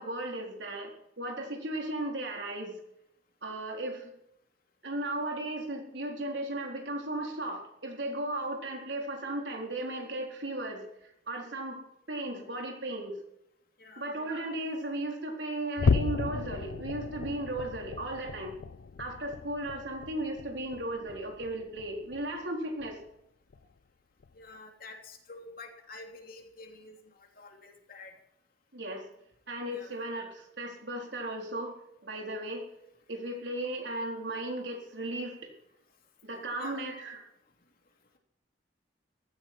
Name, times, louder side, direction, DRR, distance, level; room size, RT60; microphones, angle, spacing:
voice 1, 0.0-2.7 3.4-4.1 4.8-10.8 11.3-11.8 12.1-13.2 14.0-18.6 19.0-23.0 28.7-29.0 29.5-31.7 32.0-32.6 33.1-35.5 36.2-37.2, right 1 dB, 85° right, 1 dB, 4.0 m, -36 dB
voice 2, 13.8-14.1 24.3-28.1 29.7-30.0 36.6-36.9, left 3 dB, 55° left, 3 dB, 2.9 m, -48 dB
sound 1, 15.8-22.4 22.8-23.1 23.5-23.6 24.2-24.3, left 4 dB, 75° left, 0.4 m, -34 dB
15.5 x 14.5 x 4.5 m, 0.77 s
head